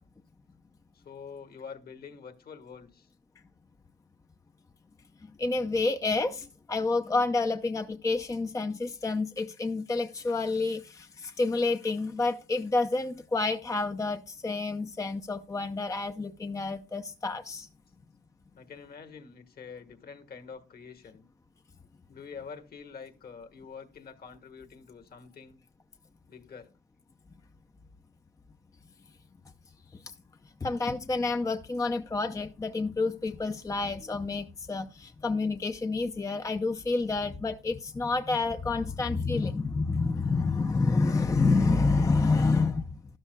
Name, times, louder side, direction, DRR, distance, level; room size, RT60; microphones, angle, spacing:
voice 1, 0.9-3.1 18.5-21.3 22.1-25.6 26.3-26.7, left 6 dB, 50° left, 1.4 m, -46 dB
voice 2, 5.4-17.7 30.6-43.0, left 3 dB, 15° left, 0.5 m, -28 dB
13.0 x 11.5 x 2.2 m
cardioid pair, 90°, 20 cm